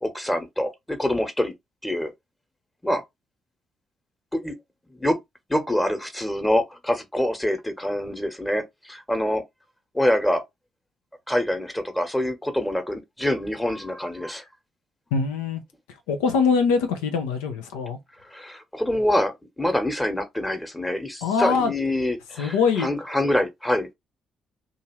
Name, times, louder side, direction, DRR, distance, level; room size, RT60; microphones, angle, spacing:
voice 1, 0.0-1.5 1.8-2.1 2.8-3.0 4.3-4.6 4.9-5.2 5.5-9.4 9.9-10.4 11.3-14.5 18.3-23.9, left 1 dB, 10° left, 1.2 m, -25 dB
voice 2, 15.1-15.6 16.1-18.0 21.2-21.7 22.4-22.9, left 5 dB, 85° left, 0.6 m, -23 dB
2.7 x 2.5 x 2.9 m
hypercardioid pair, 45°, 0 cm